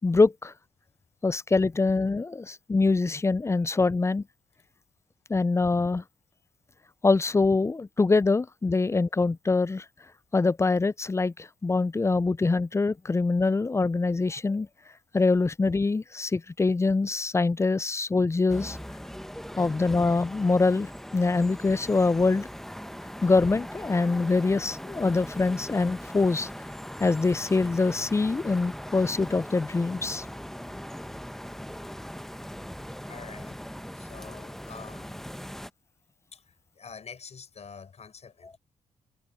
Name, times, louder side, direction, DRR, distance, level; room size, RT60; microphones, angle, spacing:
voice 1, 0.0-0.5 1.2-4.2 5.3-6.0 7.0-9.9 10.3-14.7 15.1-18.8 19.6-22.5 23.2-26.5 27.0-30.3, left 3 dB, 20° left, 0.5 m, -24 dB
sound 1, 18.5-35.7, equal, ahead, 1.1 m, -40 dB
voice 2, 33.1-33.6 33.9-35.3 36.3-38.6, left 6 dB, 50° left, 6.4 m, -46 dB
supercardioid pair, 60°, 14 cm